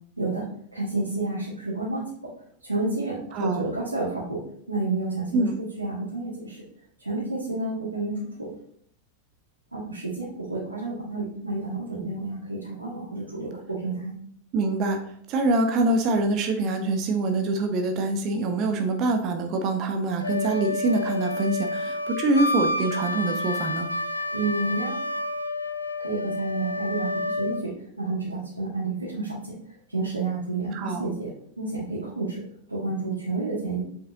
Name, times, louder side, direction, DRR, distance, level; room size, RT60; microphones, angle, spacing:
voice 1, 0.2-0.5 0.7-2.3 2.6-4.4 4.7-5.4 5.8-6.6 7.0-8.5 9.7-14.1 24.3-24.9 26.0-31.3 31.6-32.4 32.7-33.8, right 2 dB, 85° right, -7 dB, 1.7 m, -30 dB
voice 2, 3.3-3.6 5.3-5.5 14.5-23.9 30.7-31.0, right 2 dB, 35° right, 5 dB, 0.8 m, -25 dB
Wind instrument woodwind instrument, 20.2-27.6, left 1 dB, 80° left, 0.3 m, -29 dB
7.3 x 5.0 x 2.8 m, 0.65 s
figure-of-eight pair, 90°, 0 cm